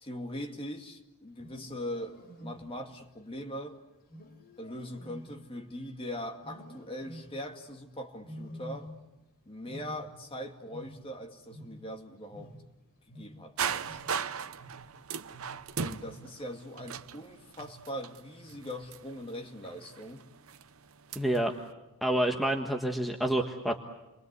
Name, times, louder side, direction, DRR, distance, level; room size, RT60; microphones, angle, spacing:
voice 1, 0.0-3.8 4.6-8.9 9.5-12.5 13.2-14.0 15.8-20.2, equal, 25° left, 4 dB, 2.2 m, -41 dB
Wild animals, 1.3-3.0 4.1-6.0 6.4-7.6 8.2-9.3 9.5-12.0 12.3-17.2 17.6-18.0 18.5-18.9 19.6-20.1, equal, 45° left, 3.8 m, -49 dB
sound 1, 13.6-21.6, right 7 dB, 70° right, 0.9 m, -38 dB
voice 2, 21.1-21.5 22.0-23.8, right 1 dB, ahead, 2 dB, 1.3 m, -28 dB
30.0 x 23.0 x 8.2 m, 0.99 s
head